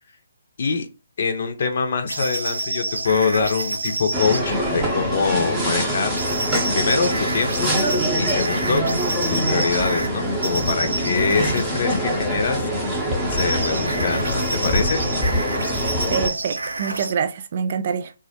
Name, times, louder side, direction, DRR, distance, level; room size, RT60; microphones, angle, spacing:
voice 1, 1.2-6.2 6.7-7.7 8.2-12.7 13.3-15.0, left 4 dB, 50° left, 0.5 m, -24 dB
sound 1, 2.1-4.4 6.1-10.1 10.4-11.7 13.4-17.1, right 2 dB, 80° right, 0.7 m, -28 dB
sound 2, 4.1-16.3, equal, 10° right, 0.7 m, -24 dB
voice 2, 16.1-18.1, right 7 dB, 45° right, 0.3 m, -25 dB
2.4 x 2.0 x 2.7 m
figure-of-eight pair, 150°, 0 cm